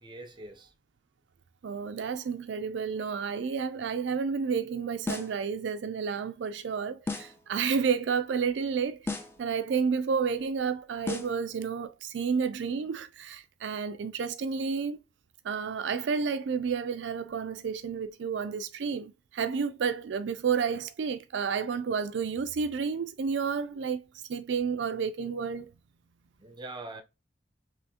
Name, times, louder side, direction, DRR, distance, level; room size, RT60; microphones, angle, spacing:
voice 1, 0.0-0.7 26.4-27.0, right 2 dB, 25° right, 0.6 m, -43 dB
voice 2, 1.6-15.0 15.4-24.0 24.3-25.7, right 6 dB, 80° right, 0.4 m, -31 dB
sound 1, 5.1-5.5 7.1-7.5 9.1-9.5 11.1-11.5, left 3 dB, 15° left, 0.6 m, -35 dB
5.5 x 3.1 x 2.8 m
head